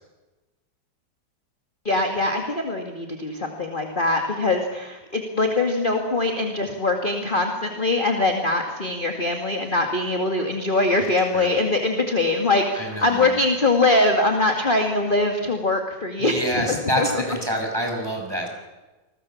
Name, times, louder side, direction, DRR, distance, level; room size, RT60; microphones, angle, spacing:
voice 1, 1.8-17.1, left 2 dB, 25° left, 3 dB, 2.2 m, -22 dB
voice 2, 12.7-13.3 16.2-18.5, equal, 10° right, 2 dB, 5.9 m, -27 dB
28.5 x 21.0 x 7.2 m, 1.1 s
omnidirectional pair, 2.1 m